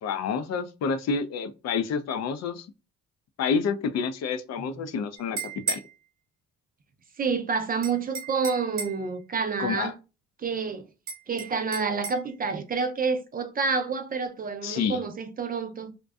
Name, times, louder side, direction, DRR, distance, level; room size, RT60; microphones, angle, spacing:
voice 1, 0.0-2.7 3.4-5.8 9.6-9.9 14.6-15.0, left 6 dB, 60° left, 0.4 m, -29 dB
sound 1, 5.2-5.9 7.8-9.1 11.1-12.2, right 4 dB, 70° right, 0.9 m, -34 dB
voice 2, 7.2-9.9 10.4-10.8 11.3-15.9, right 5 dB, 30° right, 0.4 m, -28 dB
2.6 x 2.1 x 2.3 m
cardioid pair, 90°, 30 cm